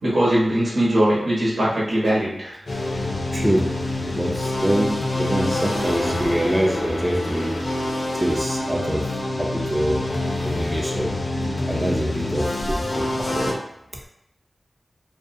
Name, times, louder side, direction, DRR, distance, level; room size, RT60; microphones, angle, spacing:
voice 1, 0.0-2.6, right 1 dB, 90° right, -8 dB, 1.1 m, -20 dB
sound 1, 2.7-13.5, left 1 dB, 70° left, 0.5 m, -26 dB
voice 2, 3.3-3.7 4.0-7.5 8.1-10.0 10.4-11.1 11.7-13.6, equal, 15° right, -1 dB, 0.4 m, -25 dB
2.4 x 2.2 x 2.6 m, 0.78 s
cardioid pair, 50°, 0 cm